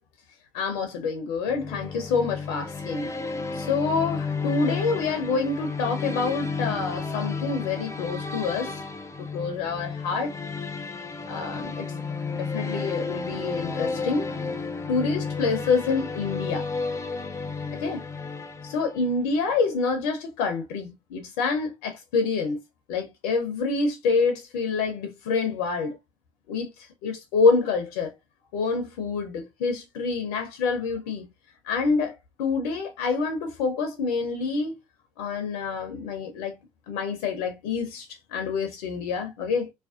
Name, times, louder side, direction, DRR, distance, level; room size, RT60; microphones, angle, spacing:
voice 1, 0.5-3.1 3.5-8.8 9.2-10.4 11.3-11.9 12.3-14.3 14.9-16.7 17.8-18.0 18.7-22.6 22.9-26.0 26.5-28.1 28.5-31.3 31.6-34.7 35.2-36.5 36.9-39.7, left 4 dB, 70° left, 0.5 m, -27 dB
sound 1, 1.5-19.2, left 4 dB, 15° left, 0.4 m, -32 dB
2.4 x 2.1 x 2.3 m
hypercardioid pair, 60°, 19 cm